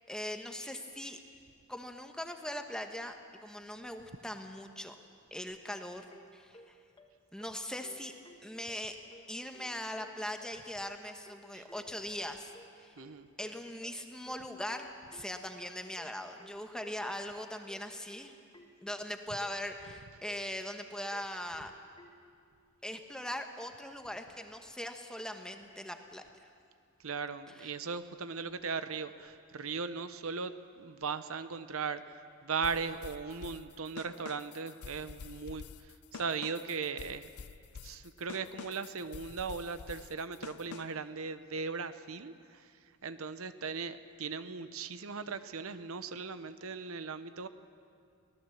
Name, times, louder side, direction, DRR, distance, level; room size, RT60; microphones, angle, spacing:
voice 1, 0.1-1.2 1.7-3.2 3.4-4.9 5.3-6.0 6.3-6.8 7.3-8.1 8.4-9.0 9.3-12.5 12.8-12.9 13.4-18.3 18.8-21.7 22.8-26.5 27.5-27.7, left 1 dB, 5° left, 5 dB, 1.1 m, -40 dB
sound 1, 6.1-22.2, equal, 20° left, 1.4 m, -56 dB
voice 2, 13.0-13.3 27.0-32.1 32.4-35.6 36.1-37.3 37.8-42.6 43.0-47.5, right 5 dB, 70° right, 11 dB, 0.8 m, -38 dB
sound 2, 32.6-41.1, left 6 dB, 85° left, 0.5 m, -48 dB
24.0 x 18.0 x 7.3 m, 2.3 s
head